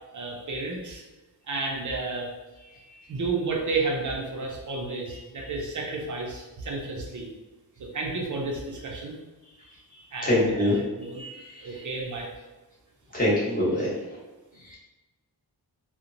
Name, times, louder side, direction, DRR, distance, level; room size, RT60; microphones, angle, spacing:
voice 1, 0.1-1.0 1.5-2.3 3.1-7.3 7.8-9.2 10.1-11.2 11.6-12.3, right 3 dB, 50° right, -1 dB, 0.5 m, -31 dB
voice 2, 10.2-10.7 11.2-11.4 13.1-13.9, left 1 dB, 20° left, -8 dB, 0.9 m, -23 dB
2.9 x 2.0 x 2.5 m, 1.1 s
wide cardioid pair, 165°, 39 cm